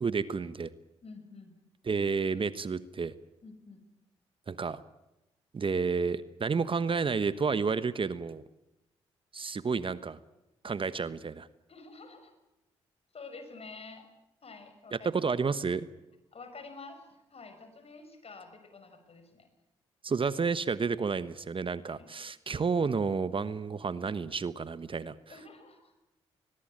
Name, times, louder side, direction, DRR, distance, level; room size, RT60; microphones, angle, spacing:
voice 1, 0.0-0.7 1.9-3.1 4.5-4.8 5.5-8.4 9.3-10.2 10.6-11.5 14.9-15.9 20.0-25.1, right 5 dB, 40° right, 14 dB, 1.2 m, -30 dB
voice 2, 1.0-1.6 3.4-3.8 11.7-12.3 13.1-14.1 14.4-15.1 16.3-19.5 21.8-22.0 25.3-25.9, left 3 dB, 50° left, 8 dB, 6.1 m, -48 dB
21.5 x 20.5 x 8.8 m, 0.94 s
hypercardioid pair, 45°, 13 cm